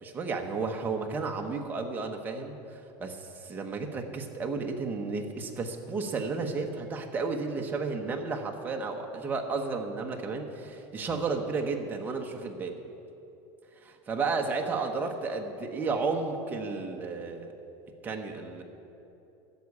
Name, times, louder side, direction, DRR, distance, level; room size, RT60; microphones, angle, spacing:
voice 1, 0.0-12.8 13.8-17.5 18.0-18.6, right 4 dB, 15° right, 2 dB, 0.9 m, -32 dB
11.5 x 7.2 x 9.5 m, 2.8 s
cardioid pair, 175°, 13 cm